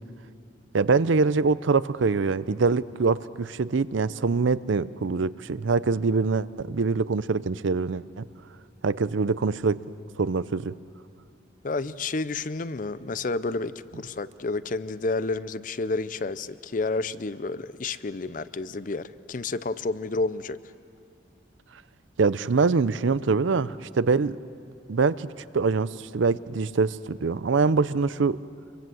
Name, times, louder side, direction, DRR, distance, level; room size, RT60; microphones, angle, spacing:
voice 1, 0.7-8.3 8.8-9.8 10.2-10.7 22.2-24.4 24.9-28.4, right 4 dB, 75° right, 16 dB, 0.6 m, -24 dB
voice 2, 11.6-20.6, left 3 dB, 40° left, 16 dB, 0.5 m, -30 dB
26.0 x 23.5 x 7.8 m, 2.4 s
head